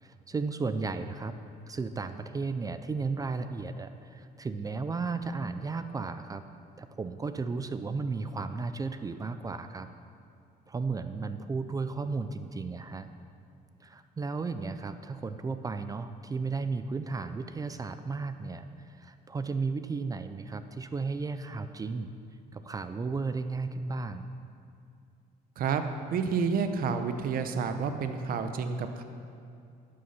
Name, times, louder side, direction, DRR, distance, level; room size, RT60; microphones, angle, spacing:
voice 1, 0.0-1.4 1.7-6.4 6.8-9.9 10.7-13.1 13.8-22.1 22.5-24.2, right 4 dB, 20° right, 10 dB, 0.4 m, -34 dB
voice 2, 26.1-29.0, right 5 dB, 60° right, 8 dB, 0.7 m, -29 dB
11.0 x 6.7 x 5.6 m, 2.4 s
cardioid pair, 110°, 17 cm